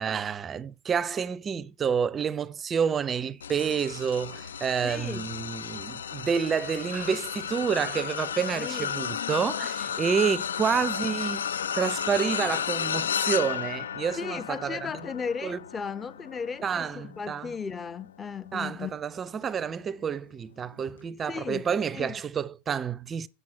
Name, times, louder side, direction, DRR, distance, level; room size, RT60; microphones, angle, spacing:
voice 1, 0.0-11.5 11.7-14.9 15.4-15.6 16.6-17.5 18.5-23.3, right 7 dB, 25° right, 0.5 m, -29 dB
sound 1, 3.4-18.9 19.4-19.7 20.9-21.0, left 8 dB, 90° left, 0.5 m, -33 dB
voice 2, 4.8-5.3 8.6-8.9 10.0-10.4 14.2-18.9 21.3-21.6 21.9-22.2, left 6 dB, 25° left, 0.9 m, -36 dB
8.1 x 7.6 x 8.6 m
hypercardioid pair, 100°, 0 cm